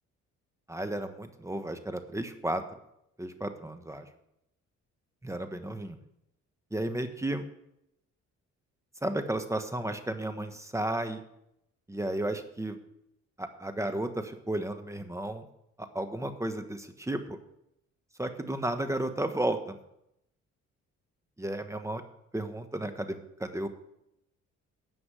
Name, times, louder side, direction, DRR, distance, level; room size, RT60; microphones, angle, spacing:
voice 1, 0.7-2.6 3.2-4.1 5.2-6.0 6.7-7.4 9.0-11.2 11.9-12.8 13.4-15.5 15.8-17.4 18.2-19.8 21.4-22.0 22.3-23.7, right 1 dB, 10° right, 8 dB, 1.1 m, -33 dB
10.0 x 7.2 x 6.2 m, 0.80 s
cardioid pair, 90°, 30 cm